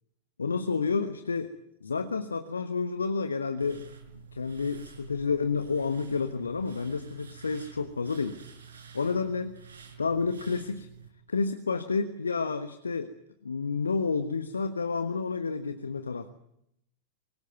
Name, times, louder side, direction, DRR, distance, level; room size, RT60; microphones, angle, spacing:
voice 1, 0.4-1.5 1.8-3.9 4.1-8.4 8.9-9.6 10.0-10.9 11.3-13.1 13.4-16.3, left 4 dB, 75° left, 9 dB, 1.3 m, -30 dB
sound 1, 3.6-11.1, right 6 dB, 70° right, 5.5 m, -50 dB
25.0 x 21.5 x 9.3 m, 0.79 s
figure-of-eight pair, 90°, 0 cm